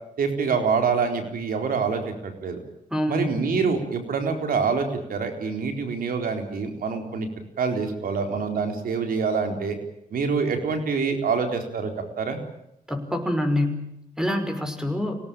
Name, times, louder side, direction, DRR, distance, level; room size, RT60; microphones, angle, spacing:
voice 1, 0.2-2.6 3.1-7.3 7.6-9.8 10.1-11.9 12.2-12.4, right 5 dB, 85° right, 5 dB, 4.1 m, -26 dB
voice 2, 2.9-3.3 12.9-13.8 14.2-15.2, left 1 dB, 5° right, 6 dB, 5.7 m, -25 dB
25.5 x 18.0 x 9.0 m, 0.81 s
cardioid pair, 60°, 15 cm